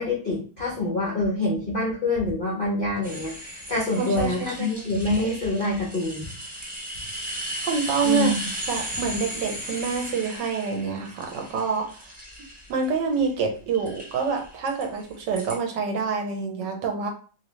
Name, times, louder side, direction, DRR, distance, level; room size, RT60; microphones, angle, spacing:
voice 1, 0.0-6.3 8.0-8.5, left 2 dB, 65° left, -4 dB, 0.5 m, -26 dB
sound 1, 3.0-13.3 13.7-15.6, right 1 dB, 5° right, 0.6 m, -36 dB
voice 2, 4.0-4.8 7.6-8.3 8.7-12.1 12.7-17.1, right 5 dB, 70° right, 3 dB, 1.2 m, -27 dB
3.1 x 2.8 x 3.0 m, 0.40 s
omnidirectional pair, 2.2 m